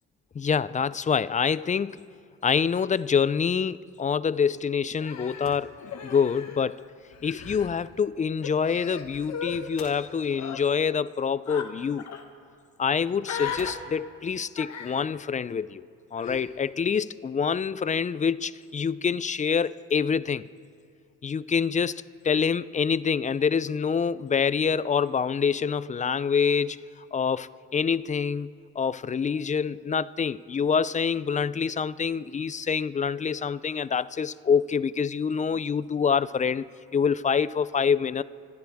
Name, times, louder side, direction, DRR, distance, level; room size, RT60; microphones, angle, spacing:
voice 1, 0.3-2.0 2.4-5.7 6.0-6.8 7.2-12.0 12.8-15.8 16.1-20.5 21.2-26.8 27.1-38.2, left 6 dB, 25° left, 0.4 m, -26 dB
sound 1, 3.8-13.9, left 4 dB, 85° left, 2.7 m, -53 dB
Human voice, 5.0-6.8 7.1-7.7 8.4-9.6 10.3-10.6 11.5-11.7 12.0-12.2 13.2-13.7 14.6-15.1 16.2-16.5, left 7 dB, 65° left, 1.5 m, -37 dB
25.5 x 14.5 x 3.5 m
cardioid pair, 90°, 30 cm